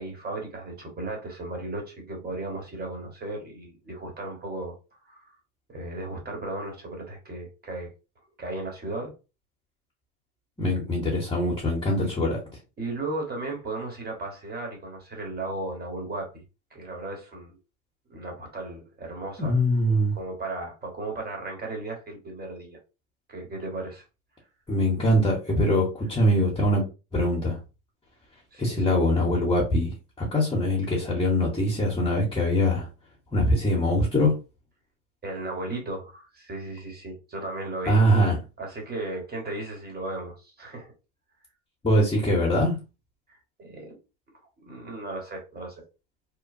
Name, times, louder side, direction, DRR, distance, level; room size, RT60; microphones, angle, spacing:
voice 1, 0.0-4.7 5.1-5.3 5.7-7.9 8.4-9.1 12.8-16.4 16.7-17.6 18.1-22.8 23.3-24.0 28.5-28.9 35.2-38.0 38.6-40.9 43.3-44.0 44.6-45.8, right 2 dB, 20° right, 1.3 m, -35 dB
voice 2, 10.6-12.4 19.4-20.1 24.7-26.9 27.1-27.6 28.6-32.9 33.3-34.3 37.9-38.4 41.8-42.8, equal, 10° left, 0.9 m, -23 dB
3.0 x 2.1 x 2.6 m
hypercardioid pair, 90°, 47 cm